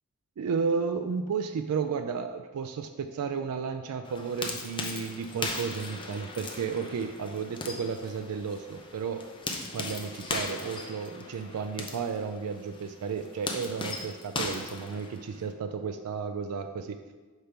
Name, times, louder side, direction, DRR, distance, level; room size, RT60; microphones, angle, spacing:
voice 1, 0.4-9.2 9.6-17.0, right 5 dB, 85° right, 7 dB, 0.4 m, -33 dB
sound 1, 4.0-15.5, left 3 dB, 20° left, 0.6 m, -38 dB
5.6 x 4.5 x 5.1 m, 1.3 s
head